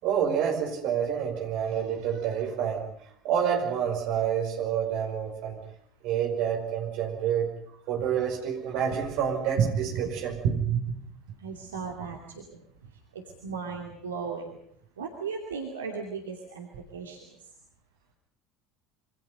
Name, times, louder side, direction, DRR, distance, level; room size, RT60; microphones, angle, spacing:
voice 1, 0.0-2.9 3.2-5.6 6.0-7.5 7.9-10.8, right 8 dB, 55° right, 4 dB, 5.2 m, -28 dB
voice 2, 11.4-12.4 13.1-14.6 15.0-16.7 16.9-17.2, right 5 dB, 75° right, 1 dB, 2.7 m, -36 dB
26.5 x 25.5 x 5.4 m, 0.66 s
figure-of-eight pair, 65°, 0 cm